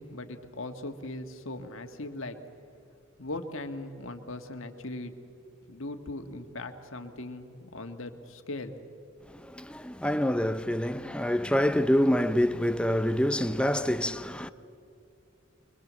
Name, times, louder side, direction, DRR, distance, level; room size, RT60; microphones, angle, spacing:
voice 1, 0.0-2.4 3.2-5.1 5.7-8.8, left 2 dB, 70° left, 1.8 m, -39 dB
voice 2, 9.3-14.5, equal, 5° left, 0.6 m, -26 dB
24.0 x 23.5 x 7.6 m
head